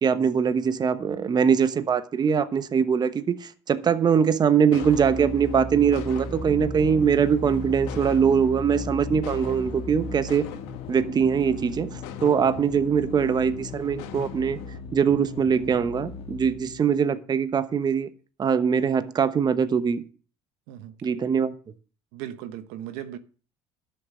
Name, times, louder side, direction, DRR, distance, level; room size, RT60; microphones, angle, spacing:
voice 1, 0.0-10.5 10.9-14.6 14.9-18.1 18.4-20.0 21.0-21.5, right 7 dB, 35° right, 1.1 m, -22 dB
sound 1, 4.7-14.8, left 11 dB, 85° left, 1.5 m, -43 dB
sound 2, 4.8-11.0, right 3 dB, 20° right, 0.6 m, -36 dB
sound 3, 6.4-17.1, left 5 dB, 55° left, 1.5 m, -40 dB
voice 2, 22.1-23.2, right 11 dB, 85° right, 1.0 m, -37 dB
11.5 x 6.8 x 6.3 m
supercardioid pair, 90°, 12 cm